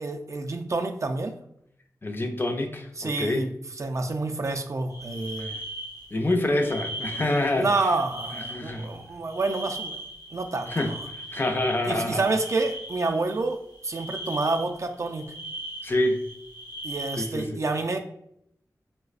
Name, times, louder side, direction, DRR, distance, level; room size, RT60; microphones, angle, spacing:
voice 1, 0.0-1.4 3.0-5.6 7.4-10.0 10.3-11.0 11.9-15.3 16.8-18.0, right 3 dB, 45° right, 5 dB, 0.3 m, -28 dB
voice 2, 2.0-3.4 5.4-5.5 6.1-7.7 8.3-8.9 10.7-10.9 11.3-12.2 15.8-16.2 17.2-17.6, left 1 dB, 30° left, 4 dB, 0.4 m, -26 dB
sound 1, 4.9-17.4, right 1 dB, 85° left, 0.7 m, -39 dB
4.6 x 2.0 x 2.4 m, 0.72 s
wide cardioid pair, 90°, 7 cm